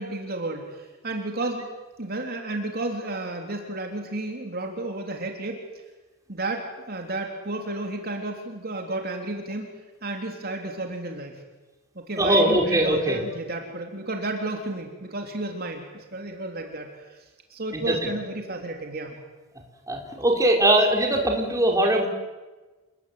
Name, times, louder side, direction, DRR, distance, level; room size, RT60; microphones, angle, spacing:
voice 1, 0.0-1.7 2.0-5.6 6.3-9.7 10.0-11.4 12.0-17.2 17.5-19.2, right 2 dB, 45° right, 2 dB, 3.4 m, -32 dB
voice 2, 12.2-13.2 17.7-18.1 19.9-22.1, right 1 dB, 15° right, 1 dB, 4.7 m, -21 dB
29.0 x 20.5 x 9.6 m, 1.2 s
head